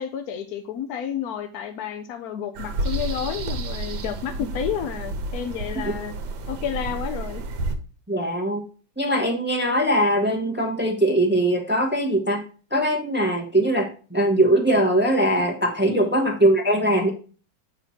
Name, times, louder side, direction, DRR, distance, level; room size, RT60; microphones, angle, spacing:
voice 1, 0.0-6.1 6.5-7.4 15.9-16.1, left 9 dB, 70° left, 7 dB, 0.9 m, -31 dB
sound 1, 2.5-7.7, right 2 dB, 80° right, 1.6 m, -30 dB
voice 2, 8.1-8.6 9.0-12.4 12.7-17.1, right 1 dB, 15° right, 3 dB, 0.4 m, -21 dB
7.9 x 3.0 x 5.6 m, 0.37 s
omnidirectional pair, 2.1 m